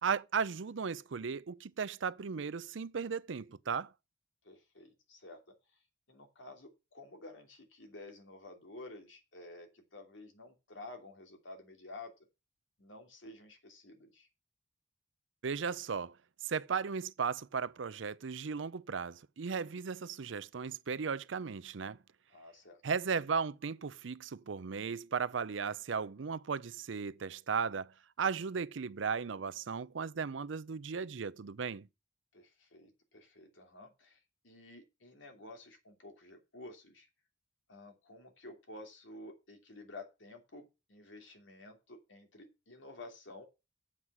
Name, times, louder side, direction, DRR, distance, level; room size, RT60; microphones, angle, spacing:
voice 1, 0.0-3.9 15.4-16.2 16.4-22.0 22.8-31.9, right 6 dB, 80° right, 0.6 m, -36 dB
voice 2, 4.4-5.4 6.1-12.1 12.8-14.3 22.3-22.8 32.3-37.1 37.7-43.4, left 2 dB, 80° left, 2.9 m, -51 dB
8.1 x 7.4 x 6.1 m
head